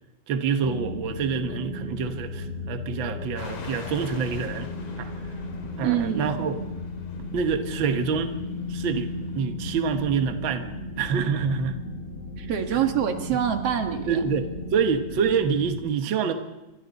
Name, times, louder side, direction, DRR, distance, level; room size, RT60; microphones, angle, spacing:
voice 1, 0.3-4.7 5.0-5.1 5.8-6.6 7.3-8.3 8.7-11.8 12.7-12.8 14.1-16.3, right 6 dB, 85° right, 7 dB, 1.0 m, -26 dB
sound 1, 0.6-15.8, left 2 dB, 20° left, 5.5 m, -35 dB
sound 2, 3.4-9.4, left 5 dB, 70° left, 4.0 m, -45 dB
voice 2, 5.8-6.4 12.4-14.3, right 9 dB, 55° right, 6 dB, 2.1 m, -25 dB
27.0 x 24.5 x 4.1 m, 0.99 s
omnidirectional pair, 4.1 m